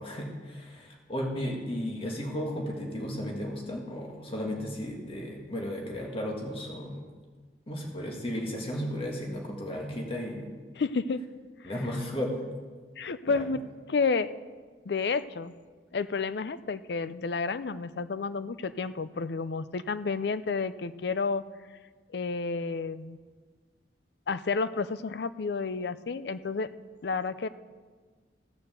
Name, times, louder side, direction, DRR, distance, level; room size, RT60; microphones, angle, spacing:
voice 1, 0.0-7.0 7.7-10.5 11.6-12.4 13.3-13.4, equal, 30° left, 0 dB, 1.8 m, -34 dB
voice 2, 10.8-11.2 13.0-13.6 13.9-14.3 14.9-15.5 15.9-21.4 22.1-23.2 24.3-26.7 27.0-27.5, left 4 dB, 70° left, 14 dB, 0.5 m, -30 dB
15.5 x 6.7 x 6.9 m, 1.5 s
head